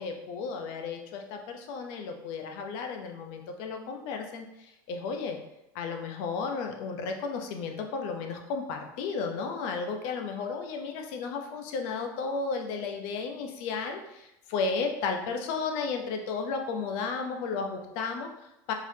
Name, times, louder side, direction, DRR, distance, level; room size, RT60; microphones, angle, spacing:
voice 1, 0.0-5.4 5.7-18.7, left 4 dB, 70° left, 4 dB, 0.8 m, -33 dB
4.5 x 4.0 x 2.8 m, 0.89 s
supercardioid pair, 105°, 10 cm